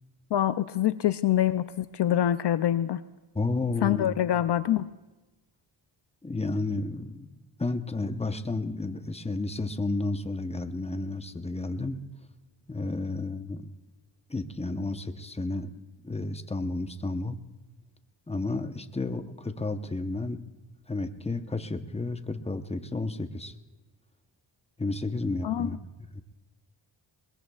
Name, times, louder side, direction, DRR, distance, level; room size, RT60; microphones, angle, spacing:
voice 1, 0.3-3.0 3.8-4.9 25.4-25.7, left 11 dB, 60° left, 13 dB, 0.5 m, -25 dB
voice 2, 3.3-4.1 6.2-7.3 7.6-12.0 12.7-13.7 14.3-15.7 16.0-17.4 18.3-20.4 20.9-23.5 24.8-25.8 26.1-26.2, left 2 dB, 15° left, 8 dB, 0.8 m, -32 dB
22.0 x 21.5 x 2.4 m, 1.1 s
cardioid pair, 80°, 48 cm